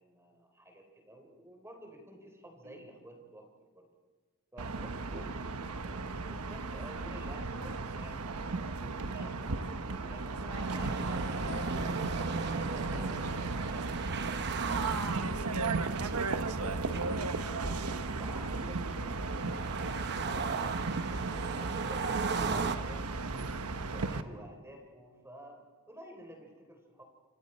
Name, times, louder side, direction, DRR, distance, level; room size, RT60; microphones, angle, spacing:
voice 1, 0.0-3.9 4.5-5.7 6.2-12.3 18.2-18.9 19.3-19.7 21.0-23.4 23.7-27.0, equal, 10° right, 3 dB, 3.6 m, -52 dB
sound 1, 4.6-24.2, right 3 dB, 85° right, 1.1 m, -35 dB
voice 2, 4.9-5.2 5.5-6.1 8.9-9.2 18.6-20.4, right 1 dB, 70° right, 5 dB, 4.3 m, -52 dB
sound 2, 10.5-22.8, right 4 dB, 50° right, 0.9 m, -37 dB
sound 3, 11.0-14.0 15.2-18.5, left 3 dB, 55° left, 0.9 m, -47 dB
29.0 x 26.5 x 4.3 m, 1.4 s
head